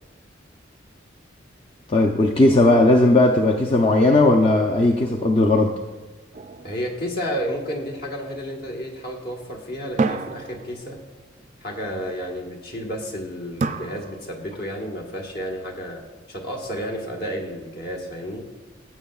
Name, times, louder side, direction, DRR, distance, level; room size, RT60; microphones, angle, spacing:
voice 1, 1.9-5.7, left 2 dB, 30° left, 1 dB, 0.5 m, -17 dB
sound 1, 6.3-7.9 10.0-11.4 13.6-14.7, right 4 dB, 35° right, 0.3 m, -30 dB
voice 2, 6.6-11.0 11.6-18.5, equal, 50° left, 0 dB, 1.5 m, -31 dB
15.5 x 7.6 x 2.4 m, 1.2 s
head